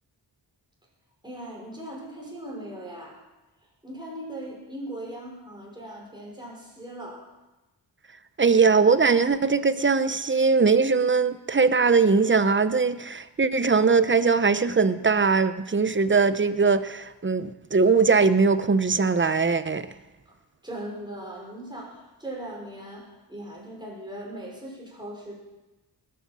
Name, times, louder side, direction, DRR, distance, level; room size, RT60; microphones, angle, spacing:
voice 1, 1.2-3.2 3.6-7.3 20.6-25.3, right 1 dB, 10° right, -3 dB, 5.5 m, -39 dB
voice 2, 8.4-19.9, right 4 dB, 25° right, 13 dB, 0.7 m, -21 dB
19.5 x 9.4 x 7.5 m, 1.1 s
wide cardioid pair, 95°, 45 cm